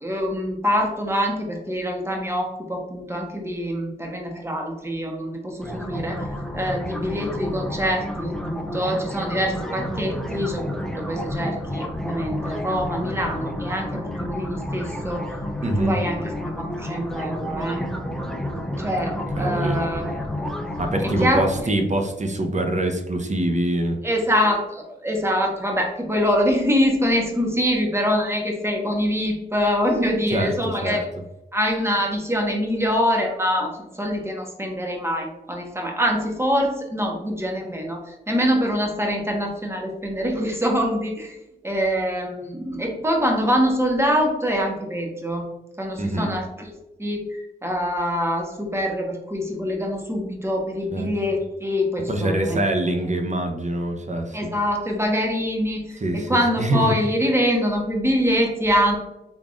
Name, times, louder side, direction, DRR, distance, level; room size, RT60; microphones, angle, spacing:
voice 1, 0.0-6.2 6.5-15.2 15.8-17.9 18.8-20.1 21.0-21.5 24.0-31.1 31.5-41.4 41.6-45.5 45.8-46.7 47.0-52.6 54.3-59.0, equal, 15° right, 1 dB, 1.1 m, -24 dB
sound 1, 5.6-21.6, left 1 dB, ahead, 0.7 m, -30 dB
voice 2, 15.6-15.9 19.3-19.8 20.8-24.0 30.3-31.0 46.0-46.3 50.9-51.1 52.1-54.5 56.0-56.9, right 1 dB, 40° right, 4 dB, 0.8 m, -24 dB
3.7 x 3.5 x 2.4 m, 0.93 s
cardioid pair, 55°, 19 cm